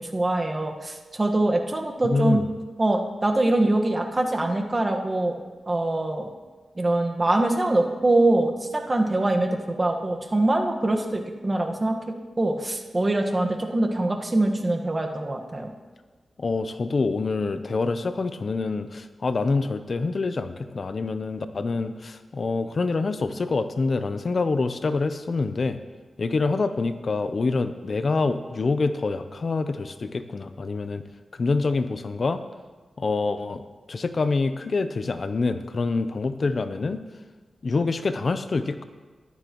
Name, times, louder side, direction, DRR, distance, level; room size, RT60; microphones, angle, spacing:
voice 1, 0.0-2.4 2.8-5.3 5.7-6.3 6.8-15.7, right 2 dB, 30° right, 2 dB, 1.4 m, -24 dB
voice 2, 2.0-2.4 16.4-25.8 26.2-31.0 31.4-32.4 33.0-33.6 33.9-37.0 37.6-38.8, left 3 dB, 55° left, 10 dB, 0.7 m, -26 dB
15.0 x 12.0 x 3.1 m, 1.3 s
cardioid pair, 65°, 0 cm